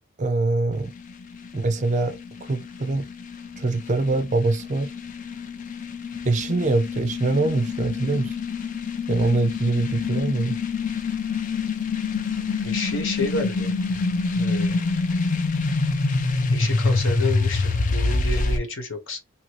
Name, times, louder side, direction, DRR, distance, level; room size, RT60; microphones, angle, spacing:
voice 1, 0.2-0.9 1.5-3.1 3.6-4.9 6.2-8.4 9.1-10.6, right 3 dB, 35° right, 0.5 m, -24 dB
sound 1, 0.7-18.6, left 3 dB, 35° left, 0.5 m, -26 dB
voice 2, 12.6-14.0 14.3-14.8 16.5-19.2, left 2 dB, 60° left, 1.2 m, -30 dB
2.7 x 2.6 x 2.9 m
head